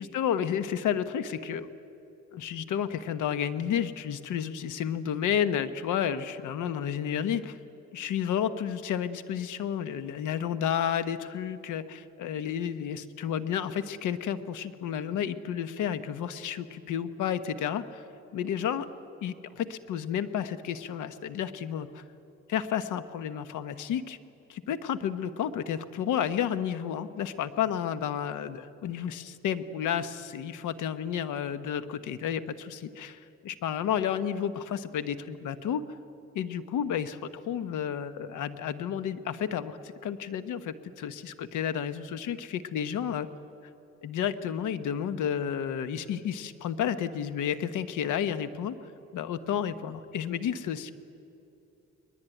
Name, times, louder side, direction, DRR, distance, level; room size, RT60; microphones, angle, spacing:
voice 1, 0.0-1.7 2.3-7.6 7.9-18.0 18.3-18.9 19.2-22.0 22.5-24.2 24.5-35.8 36.3-43.3 44.0-48.8 49.1-50.9, left 9 dB, 80° left, 12 dB, 1.2 m, -31 dB
21.5 x 21.0 x 9.2 m, 2.8 s
cardioid pair, 90°, 30 cm